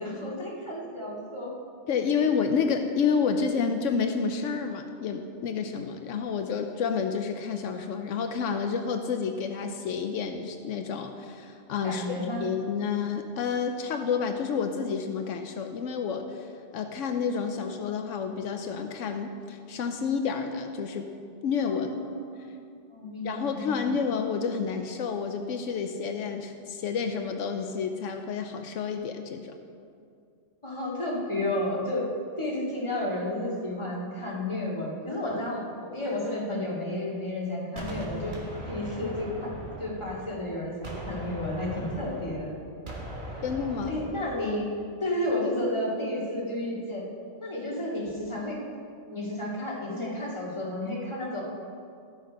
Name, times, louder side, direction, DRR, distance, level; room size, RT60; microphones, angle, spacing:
voice 1, 0.0-1.5 11.8-12.4 21.7-22.5 22.9-23.9 30.6-32.1 32.4-38.3 38.6-39.5 39.8-42.5 43.9-44.7 45.0-47.1 47.4-48.6 49.1-51.4, left 1 dB, 25° left, -5 dB, 2.1 m, -32 dB
voice 2, 1.9-16.5 16.7-21.1 21.4-21.9 23.2-29.6 43.4-44.0, left 6 dB, 85° left, 6 dB, 1.0 m, -29 dB
Gunshot gunfire, 37.8-40.5 40.8-44.4, right 1 dB, 40° right, 1.6 m, -39 dB
13.0 x 6.5 x 5.2 m, 2.4 s
omnidirectional pair, 1.3 m